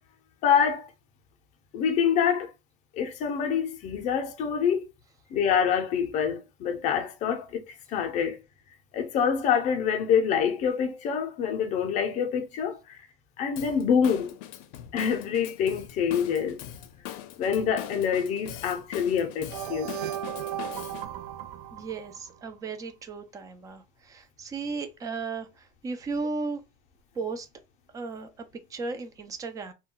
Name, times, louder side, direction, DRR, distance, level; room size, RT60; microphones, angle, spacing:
voice 1, 0.4-0.9 1.7-2.5 3.0-4.8 5.3-8.4 8.9-13.0 13.4-14.4 14.9-16.6 17.4-20.0, left 7 dB, 40° left, 0.5 m, -26 dB
Drum kit / Drum, 13.6-21.1, left 11 dB, 85° left, 0.5 m, -41 dB
sound 1, 19.5-22.6, right 11 dB, 90° right, 0.5 m, -36 dB
voice 2, 21.7-26.6 27.1-27.5 27.9-29.7, right 4 dB, 15° right, 0.4 m, -35 dB
2.2 x 2.2 x 3.7 m
cardioid pair, 160°, 20 cm